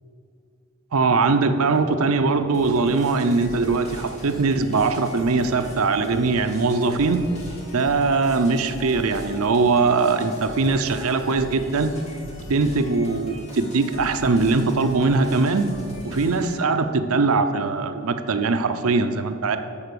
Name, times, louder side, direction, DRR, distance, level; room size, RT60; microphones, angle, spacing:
voice 1, 0.9-7.2 7.7-11.9 12.5-15.7 16.0-19.6, right 3 dB, 75° right, 8 dB, 0.6 m, -21 dB
sound 1, 2.5-16.5, left 1 dB, 30° left, 1.7 m, -40 dB
12.5 x 4.6 x 6.8 m, 2.6 s
head